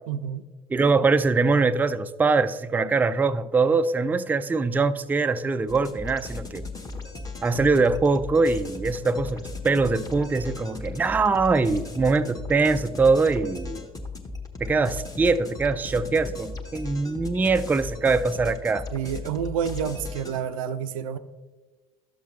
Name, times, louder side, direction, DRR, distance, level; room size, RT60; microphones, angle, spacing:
voice 1, 0.1-0.4 18.9-21.2, right 8 dB, 70° right, 12 dB, 0.5 m, -29 dB
voice 2, 0.7-6.6 7.4-13.8 14.6-18.9, right 4 dB, 10° right, 11 dB, 0.3 m, -23 dB
sound 1, 5.7-20.4, left 3 dB, 20° left, 1.2 m, -37 dB
12.0 x 7.2 x 3.1 m, 1.3 s
figure-of-eight pair, 55°, 18 cm